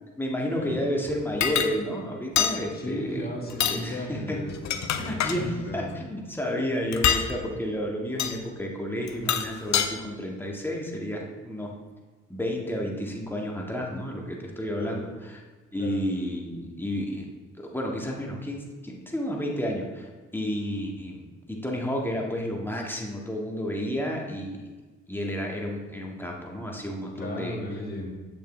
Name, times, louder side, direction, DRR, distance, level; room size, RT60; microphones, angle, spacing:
voice 1, 0.2-3.3 3.7-4.4 5.0-11.7 12.3-15.4 15.7-17.3 17.6-20.1 20.3-24.6 25.1-27.6, equal, 5° left, -1 dB, 1.8 m, -31 dB
sound 1, 1.4-1.7 2.4-2.6 3.5-3.8 4.5-5.4 6.9-7.3 8.2-8.4 9.1-9.9, left 8 dB, 60° left, 0.7 m, -25 dB
voice 2, 2.7-5.9 14.8-15.0 15.8-16.0 27.1-28.1, left 1 dB, 30° left, -2 dB, 2.2 m, -35 dB
7.9 x 6.9 x 3.3 m, 1.3 s
supercardioid pair, 55°, 31 cm